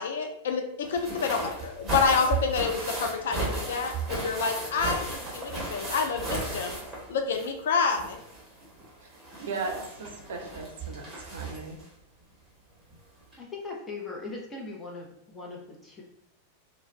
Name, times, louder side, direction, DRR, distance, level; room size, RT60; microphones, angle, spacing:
voice 1, 0.0-6.8 7.1-8.2, left 5 dB, 60° left, 4 dB, 0.3 m, -28 dB
sound 1, 0.8-7.6 7.9-11.8 12.9-13.0 13.3-13.4, right 3 dB, 15° right, 1.1 m, -35 dB
voice 2, 9.4-11.8, right 4 dB, 65° right, 2 dB, 0.5 m, -37 dB
voice 3, 13.4-16.0, left 3 dB, 15° left, -2 dB, 0.7 m, -39 dB
2.3 x 2.1 x 3.1 m, 0.77 s
figure-of-eight pair, 90°, 0 cm